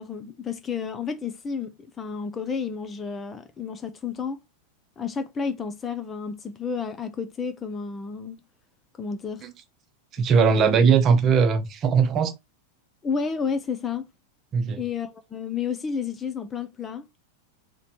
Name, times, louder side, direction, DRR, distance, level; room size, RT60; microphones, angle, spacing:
voice 1, 0.0-4.4 5.0-8.4 9.0-9.5 10.3-10.7 13.0-14.1 14.8-17.1, left 6 dB, 20° left, 0.5 m, -31 dB
voice 2, 10.1-12.3 14.5-14.8, right 6 dB, 30° right, 0.8 m, -20 dB
4.1 x 3.0 x 4.2 m
figure-of-eight pair, 90°, 0 cm